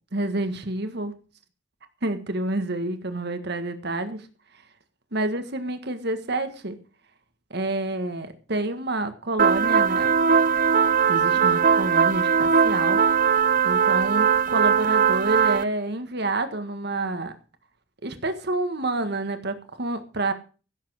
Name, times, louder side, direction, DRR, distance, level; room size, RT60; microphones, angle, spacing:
voice 1, 0.1-1.1 2.0-4.3 5.1-6.8 7.5-10.2 11.1-13.0 13.6-17.3 18.0-20.3, right 2 dB, 60° right, 9 dB, 1.6 m, -28 dB
sound 1, 9.4-15.6, right 6 dB, 45° right, 0.6 m, -20 dB
16.0 x 7.6 x 6.4 m, 0.36 s
head